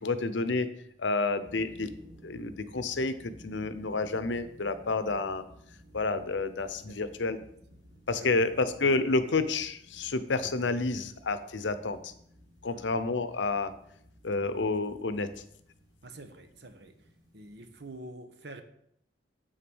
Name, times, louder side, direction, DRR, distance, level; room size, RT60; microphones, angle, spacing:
voice 1, 0.0-0.7 1.0-1.9 2.2-5.4 5.9-7.4 8.1-12.1 12.6-13.7 14.2-15.3, left 3 dB, 90° left, 0.8 m, -29 dB
sound 1, 1.4-18.0, equal, 20° right, 2.4 m, -56 dB
voice 2, 6.9-7.2 7.8-8.5 12.7-13.0 16.0-17.0 17.3-18.6, right 2 dB, 65° right, 1.1 m, -48 dB
7.9 x 6.5 x 6.2 m
head